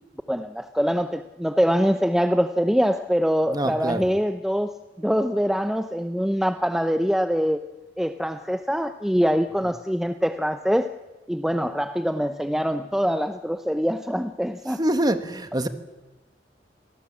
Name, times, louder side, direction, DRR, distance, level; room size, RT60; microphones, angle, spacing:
voice 1, 0.3-7.6 8.0-10.9 11.3-14.8, equal, 5° right, 8 dB, 0.6 m, -24 dB
voice 2, 3.5-4.1 14.8-15.7, right 1 dB, 20° right, 9 dB, 1.4 m, -25 dB
26.0 x 18.0 x 7.3 m, 1.2 s
head